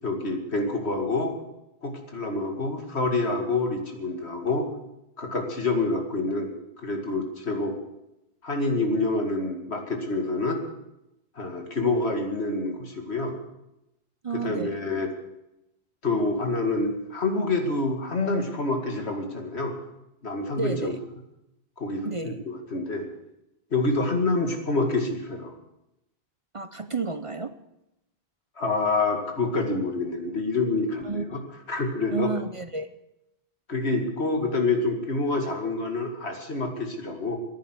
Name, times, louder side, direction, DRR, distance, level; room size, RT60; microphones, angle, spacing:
voice 1, 0.0-1.3 1.8-4.7 5.2-6.5 6.8-7.7 8.4-10.6 11.4-13.4 14.4-15.1 16.0-19.7 20.2-21.0 21.8-23.1 23.7-25.5 28.6-31.4 31.7-32.3 33.7-37.4, left 3 dB, 85° left, 3 dB, 2.4 m, -27 dB
voice 2, 14.2-14.8 20.6-21.0 22.0-22.4 26.5-27.5 31.0-31.4 32.1-32.9, right 4 dB, 35° right, 11 dB, 0.6 m, -31 dB
14.5 x 10.0 x 8.1 m, 0.90 s
omnidirectional pair, 1.1 m